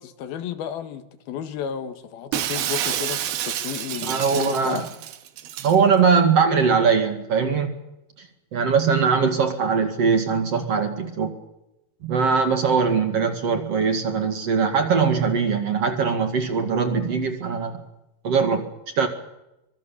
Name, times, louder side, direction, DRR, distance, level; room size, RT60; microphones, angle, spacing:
voice 1, 0.0-4.9, left 8 dB, 80° left, 10 dB, 3.3 m, -33 dB
Shatter, 2.3-5.8, right 11 dB, 85° right, 3.2 m, -29 dB
voice 2, 4.0-4.8 5.6-7.7 8.2-8.3 8.5-11.3 12.0-17.8 18.2-18.7 19.0-19.1, right 5 dB, 45° right, 6 dB, 2.7 m, -21 dB
25.0 x 22.5 x 7.1 m, 0.89 s
omnidirectional pair, 4.3 m